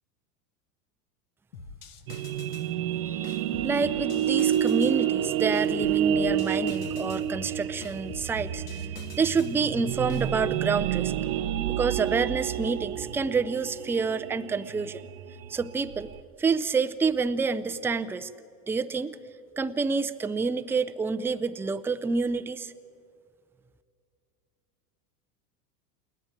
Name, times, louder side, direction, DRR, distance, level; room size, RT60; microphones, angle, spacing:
sound 1, 1.5-2.7 3.2-5.0 5.5-7.3 7.8-9.6 10.1-10.6, left 5 dB, 90° left, 1.6 m, -45 dB
sound 2, 2.1-16.2, right 10 dB, 70° right, 0.9 m, -29 dB
voice 1, 3.0-8.8 9.2-11.1 11.7-15.1 15.5-16.1 16.4-18.3 18.7-19.2 19.6-22.7, right 4 dB, 5° right, 12 dB, 0.5 m, -28 dB
28.5 x 10.5 x 9.4 m, 2.4 s
hypercardioid pair, 105°, 44 cm